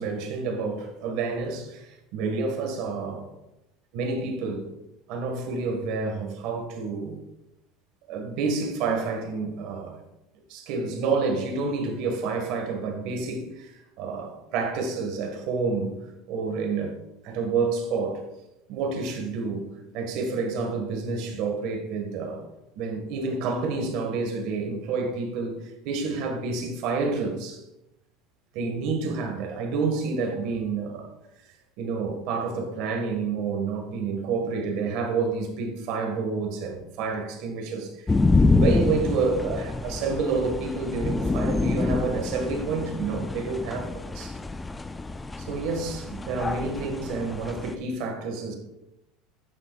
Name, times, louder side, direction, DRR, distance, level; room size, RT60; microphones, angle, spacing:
voice 1, 0.0-3.3 3.9-4.7 5.1-7.2 8.1-10.0 10.5-16.0 16.3-17.0 17.2-18.2 18.7-19.7 19.9-22.4 22.8-25.6 25.8-27.6 28.5-31.1 31.8-38.2 38.6-44.4 45.4-48.6, right 4 dB, 65° right, 1.7 m, -29 dB
sound 1, 38.1-47.8, left 3 dB, 15° left, 0.3 m, -27 dB
11.0 x 6.5 x 2.4 m
supercardioid pair, 130°, 0 cm